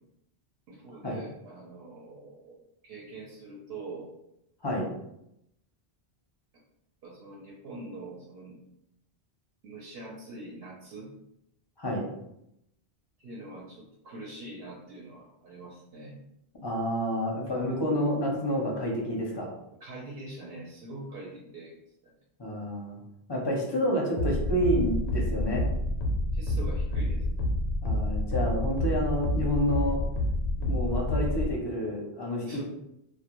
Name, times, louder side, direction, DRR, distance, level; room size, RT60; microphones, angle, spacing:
voice 1, 0.7-2.6 2.8-4.1 7.0-8.6 9.6-11.1 13.2-16.2 19.8-21.7 22.0-22.1 26.3-27.2 32.4-32.6, right 2 dB, 70° right, -4 dB, 0.8 m, -43 dB
voice 2, 16.6-19.5 22.4-23.0 23.3-25.6 27.8-30.0 30.6-32.6, equal, 35° left, -2 dB, 0.4 m, -29 dB
sound 1, 24.2-31.5, left 1 dB, 85° left, 0.9 m, -28 dB
2.3 x 2.1 x 2.9 m, 0.81 s
omnidirectional pair, 1.1 m